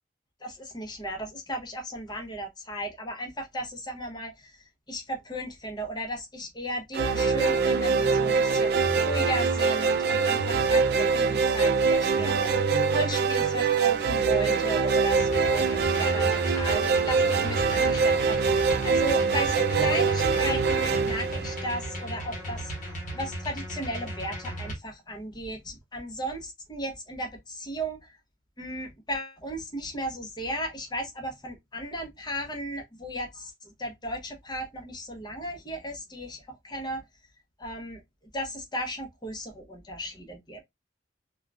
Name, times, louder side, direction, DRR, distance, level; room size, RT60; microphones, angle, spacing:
voice 1, 0.4-4.6 4.9-12.5 12.9-22.7 23.1-28.0 28.6-37.0 37.6-38.0 38.3-40.6, right 1 dB, 20° left, 0.9 m, -35 dB
sound 1, 6.9-22.2, right 5 dB, 55° right, 0.4 m, -24 dB
sound 2, 15.1-24.7, equal, 45° left, 1.0 m, -36 dB
3.6 x 2.3 x 2.4 m
head